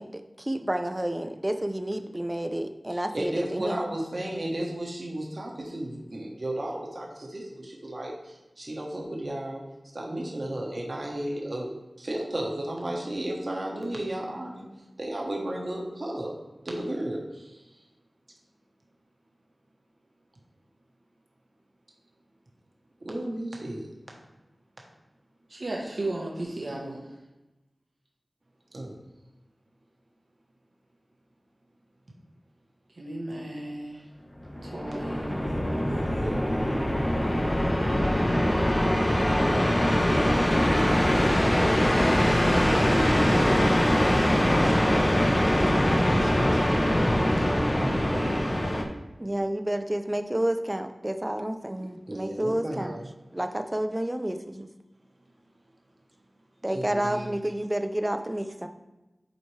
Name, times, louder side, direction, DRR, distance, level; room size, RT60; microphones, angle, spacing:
voice 1, 0.0-3.9 49.2-52.9 53.3-54.7 56.6-58.7, right 1 dB, 20° right, 7 dB, 0.5 m, -30 dB
voice 2, 2.9-9.6 9.9-14.7 15.0-16.3 16.6-17.6 23.0-23.9 28.7-28.9 35.8-37.0 41.6-45.0 45.7-46.9 47.4-48.4 52.1-53.1 56.7-57.3, right 1 dB, 55° right, -1 dB, 1.1 m, -34 dB
voice 3, 25.5-27.0 32.9-34.0 34.6-35.3, right 1 dB, 70° right, -2 dB, 1.0 m, -34 dB
sound 1, 34.4-48.8, equal, 25° left, 0.8 m, -23 dB
7.9 x 4.1 x 3.3 m, 1.0 s
wide cardioid pair, 55°, 0 cm